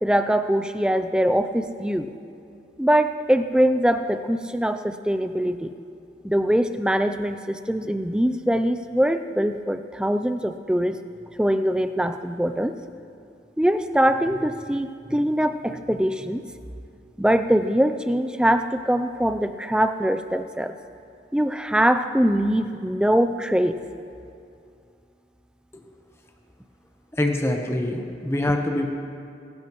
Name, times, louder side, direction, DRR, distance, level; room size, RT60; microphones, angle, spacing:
voice 1, 0.0-2.1 2.8-5.7 6.2-11.0 11.4-12.8 13.6-16.4 17.2-20.8 21.3-23.8, equal, 5° right, 9 dB, 0.4 m, -22 dB
voice 2, 27.1-28.9, left 1 dB, 15° left, 3 dB, 1.0 m, -24 dB
21.0 x 12.0 x 3.1 m, 2.5 s
head